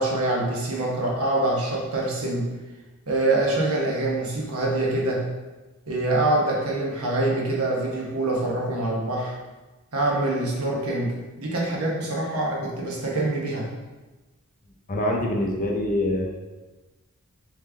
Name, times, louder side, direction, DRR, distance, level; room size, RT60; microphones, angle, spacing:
voice 1, 0.0-2.5 3.1-5.2 5.9-9.4 9.9-13.7, right 2 dB, 70° right, -3 dB, 1.0 m, -25 dB
voice 2, 14.9-16.3, left 1 dB, 40° left, 0 dB, 0.6 m, -24 dB
3.6 x 3.2 x 3.3 m, 1.1 s
head